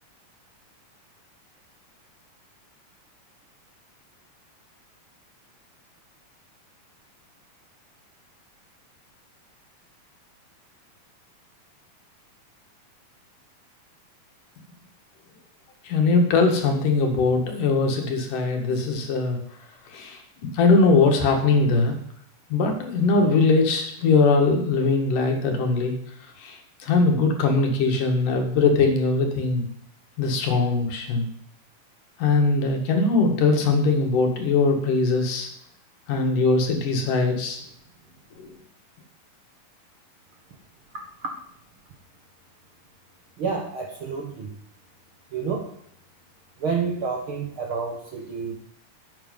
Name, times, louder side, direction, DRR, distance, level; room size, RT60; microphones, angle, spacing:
voice 1, 15.8-19.4 19.9-20.2 20.5-21.9 22.5-25.9 26.4-29.6 30.2-31.3 32.2-35.5 36.1-37.6 38.4-38.5, left 3 dB, 70° left, 3 dB, 3.4 m, -21 dB
voice 2, 43.4-44.5 45.3-45.7 46.6-48.6, right 5 dB, 50° right, 2 dB, 1.7 m, -29 dB
12.0 x 8.8 x 5.4 m, 0.67 s
omnidirectional pair, 3.9 m